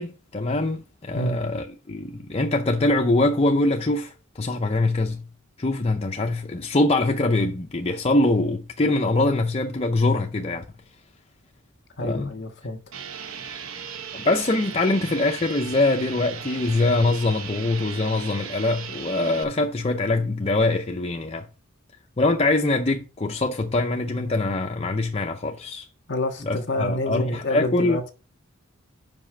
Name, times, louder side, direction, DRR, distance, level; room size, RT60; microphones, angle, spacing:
voice 1, 0.0-5.3 5.6-10.6 12.0-12.3 14.1-21.5 22.2-25.9 26.4-28.0, left 2 dB, 30° left, 0.6 m, -23 dB
voice 2, 12.0-12.8 26.1-28.1, left 1 dB, 55° left, 1.5 m, -28 dB
sound 1, 12.9-19.4, right 7 dB, 75° right, 1.0 m, -37 dB
5.6 x 5.4 x 6.5 m
head